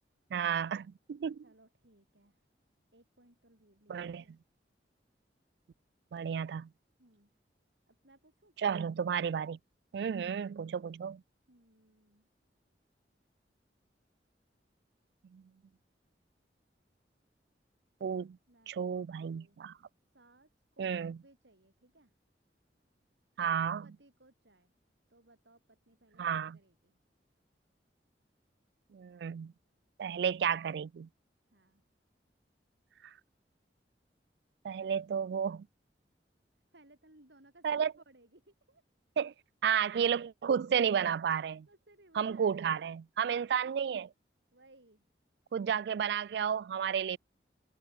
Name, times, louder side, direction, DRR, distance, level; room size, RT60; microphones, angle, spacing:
voice 1, 0.3-1.4 3.9-4.2 6.1-6.7 8.6-9.6 9.9-11.2 15.3-15.4 18.0-18.4 18.7-19.7 20.8-21.2 23.4-23.8 26.2-26.6 28.9-29.5 30.0-31.1 34.6-35.7 37.6-37.9 39.2-39.3 39.6-41.7 42.2-44.1 45.5-47.2, right 7 dB, 65° right, 0.3 m, -32 dB
voice 2, 1.4-2.4 2.9-4.4 7.0-7.4 7.9-8.6 11.5-12.3 18.5-18.9 19.2-19.6 20.1-22.1 23.5-24.7 25.1-27.0 31.5-31.8 36.7-38.8 41.7-42.9 43.4-43.8 44.5-45.0, right 1 dB, 80° right, 7.5 m, -63 dB
head